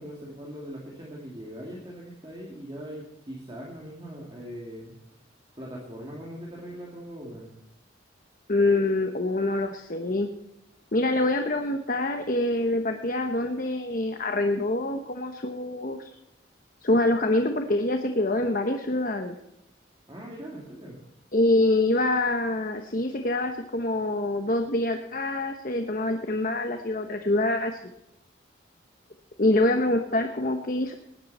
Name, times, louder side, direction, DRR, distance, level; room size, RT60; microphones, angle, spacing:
voice 1, 0.0-4.9 5.6-7.5 20.1-21.0, equal, 25° right, -3 dB, 2.7 m, -40 dB
voice 2, 8.5-10.3 10.9-16.1 16.8-19.4 21.3-27.8 29.4-30.9, left 2 dB, 45° left, 5 dB, 1.0 m, -25 dB
19.5 x 11.0 x 4.3 m, 0.86 s
head